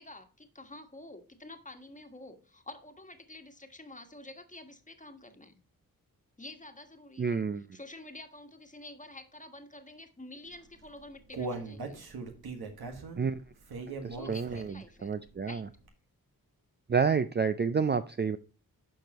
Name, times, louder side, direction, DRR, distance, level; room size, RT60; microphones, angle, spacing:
voice 1, 0.0-5.5 6.4-12.0 14.1-15.1 15.5-15.7, left 2 dB, 20° left, 6 dB, 1.4 m, -49 dB
voice 2, 7.2-7.6 13.2-13.4 14.0-14.6 15.0-15.6 16.9-18.4, right 5 dB, 30° right, 10 dB, 0.4 m, -29 dB
Human voice, 10.7-14.9 15.3-15.4 15.9-16.0, right 3 dB, 85° right, 1.6 m, -39 dB
12.0 x 4.5 x 3.0 m, 0.36 s
cardioid pair, 50°, 37 cm